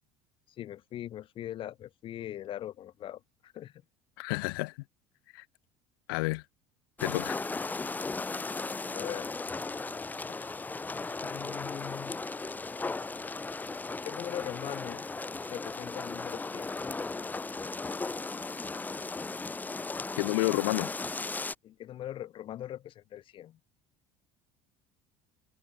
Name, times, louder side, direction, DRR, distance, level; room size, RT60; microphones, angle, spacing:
voice 1, 0.6-3.7 8.9-9.4 11.2-12.2 14.0-15.0 15.5-16.8 21.6-23.6, left 12 dB, 50° left, 6.0 m, -41 dB
voice 2, 4.2-4.7 5.3-5.4 6.1-6.4 7.0-7.4 20.2-20.9, left 26 dB, 90° left, 0.9 m, -30 dB
sound 1, 7.0-21.5, left 3 dB, 15° left, 2.0 m, -36 dB
supercardioid pair, 110°, 11 cm